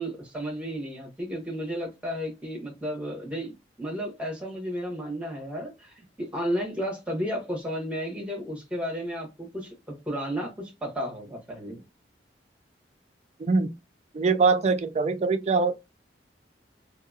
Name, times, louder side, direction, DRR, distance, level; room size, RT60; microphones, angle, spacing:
voice 1, 0.0-3.5 3.8-11.8, equal, 5° right, 1.1 m, -33 dB
voice 2, 13.4-13.7 14.1-15.7, right 4 dB, 35° right, 0.3 m, -23 dB
2.8 x 2.6 x 2.4 m
head